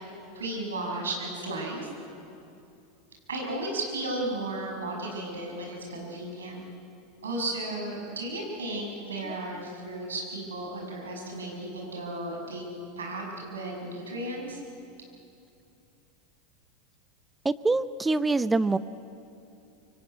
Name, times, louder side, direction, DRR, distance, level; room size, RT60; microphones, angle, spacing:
voice 1, 0.3-1.9 3.3-6.6 7.2-12.7 13.0-14.6, right 2 dB, 75° right, 0 dB, 6.1 m, -34 dB
voice 2, 17.4-18.8, right 3 dB, 15° right, 15 dB, 0.7 m, -25 dB
25.0 x 23.5 x 9.5 m, 2.7 s
figure-of-eight pair, 85°, 0 cm